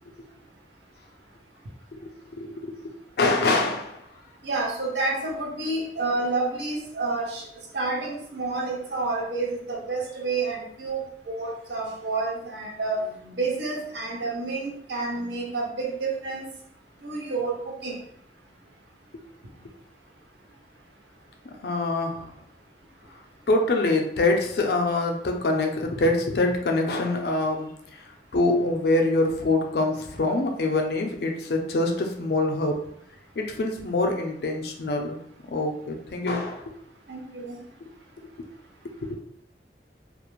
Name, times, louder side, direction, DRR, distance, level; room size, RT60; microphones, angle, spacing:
voice 1, 1.9-4.0 21.6-22.3 23.5-27.7 28.3-32.8 33.4-35.2 35.5-36.7 37.8-37.9 38.4-38.5 39.0-39.2, left 2 dB, 60° left, 3 dB, 0.4 m, -25 dB
voice 2, 4.4-7.5 7.7-16.5 17.0-18.0 37.1-37.6, right 3 dB, 75° right, -1 dB, 0.6 m, -29 dB
2.4 x 2.1 x 2.9 m, 0.70 s
head